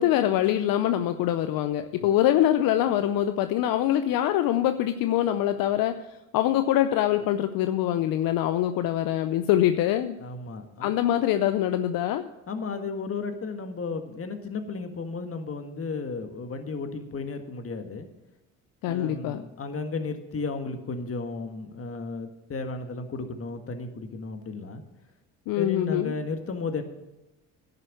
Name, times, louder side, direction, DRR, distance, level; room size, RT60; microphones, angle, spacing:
voice 1, 0.0-6.0 6.3-10.2 10.8-12.3 18.8-19.4 25.5-26.2, left 12 dB, 70° left, 9 dB, 0.7 m, -24 dB
voice 2, 10.2-10.9 12.5-18.1 18.8-24.8 25.5-26.8, left 4 dB, 40° left, 6 dB, 1.8 m, -34 dB
10.5 x 6.9 x 8.4 m, 1.0 s
supercardioid pair, 65°, 36 cm